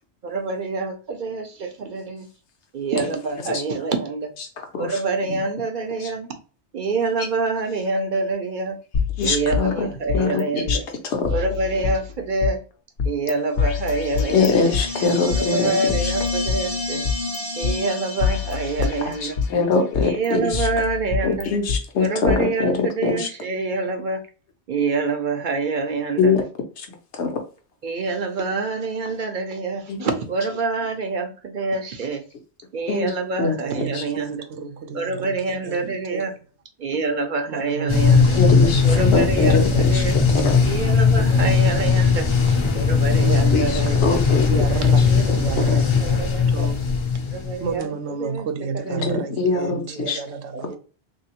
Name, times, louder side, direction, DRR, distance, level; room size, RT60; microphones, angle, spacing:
voice 1, 0.2-2.3 2.7-4.3 4.8-6.3 6.7-8.8 9.2-10.9 11.3-12.6 13.0-14.6 15.2-17.1 17.6-19.4 20.0-21.5 22.0-24.2 24.7-26.3 27.8-32.2 32.7-34.5 34.9-36.3 36.8-38.4 38.8-40.2 40.6-44.2 44.8-46.7 47.3-49.0 49.9-50.8, right 3 dB, 55° right, 0.6 m, -26 dB
sound 1, 8.9-10.4 10.7-10.8 11.3-12.5 13.0-13.3 13.6-15.4 15.9-17.4 17.6-17.7 18.2-19.6 19.9-21.8 22.3-22.4, left 6 dB, 65° left, 0.8 m, -26 dB
voice 2, 9.2-9.9 10.1-10.4 10.7-10.8 11.1-11.3 14.3-15.7 19.5-20.7 21.2-23.3 26.2-26.4 27.1-27.4 29.9-30.1 32.9-33.1 33.4-33.6 33.9-34.0 38.4-40.0 40.3-40.6 43.5-44.9 45.7-45.8 48.9-50.2, left 4 dB, 85° left, 1.1 m, -22 dB
sound 2, 13.8-19.2, left 2 dB, 15° right, 0.6 m, -30 dB
voice 3, 33.6-35.1 35.7-35.8 36.1-36.2 37.5-39.8 41.2-41.5 43.2-44.0 44.3-45.0 45.3-46.8 47.6-50.8, right 5 dB, 85° right, 0.9 m, -30 dB
sound 3, 37.9-47.7, left 5 dB, 45° left, 0.4 m, -18 dB
3.2 x 2.7 x 2.8 m
omnidirectional pair, 1.1 m